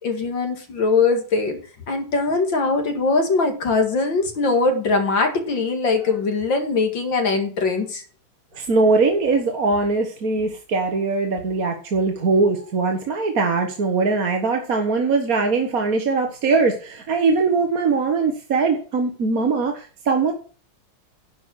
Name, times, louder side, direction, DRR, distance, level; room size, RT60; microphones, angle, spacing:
voice 1, 0.0-1.6 1.9-8.0, left 3 dB, 65° left, 5 dB, 2.7 m, -21 dB
voice 2, 8.5-20.3, right 4 dB, 45° right, 4 dB, 1.6 m, -21 dB
11.0 x 5.9 x 6.3 m, 0.38 s
omnidirectional pair, 2.3 m